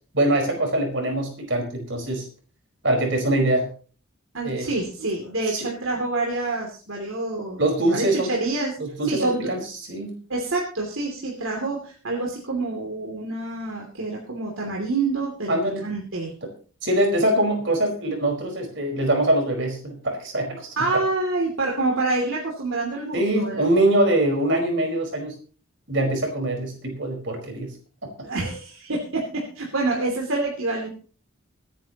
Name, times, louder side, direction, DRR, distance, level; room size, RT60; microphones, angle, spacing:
voice 1, 0.1-2.2 2.8-3.7 4.4-4.7 5.5-5.6 7.6-8.3 8.8-9.6 9.9-10.1 15.5-15.8 16.8-20.7 23.1-25.4 25.9-27.7, right 1 dB, 55° right, 2 dB, 5.0 m, -23 dB
voice 2, 4.3-7.6 7.9-8.8 9.0-9.5 10.3-15.5 15.8-16.3 20.8-23.6 28.2-30.9, right 2 dB, 75° right, -1 dB, 2.9 m, -27 dB
25.0 x 10.0 x 3.0 m, 0.39 s
head